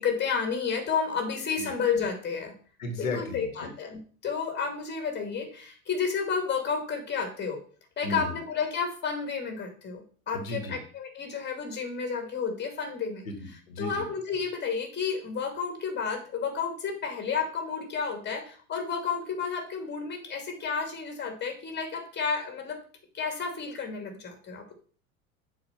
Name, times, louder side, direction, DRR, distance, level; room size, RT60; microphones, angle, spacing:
voice 1, 0.0-2.5 3.0-7.6 8.0-13.3 13.8-22.8 23.1-24.7, left 5 dB, 25° left, 5 dB, 2.3 m, -31 dB
voice 2, 2.8-3.7 8.0-8.3 10.3-10.8 13.3-14.0, left 2 dB, 70° left, 5 dB, 1.6 m, -34 dB
7.1 x 4.5 x 5.6 m, 0.43 s
figure-of-eight pair, 75°, 42 cm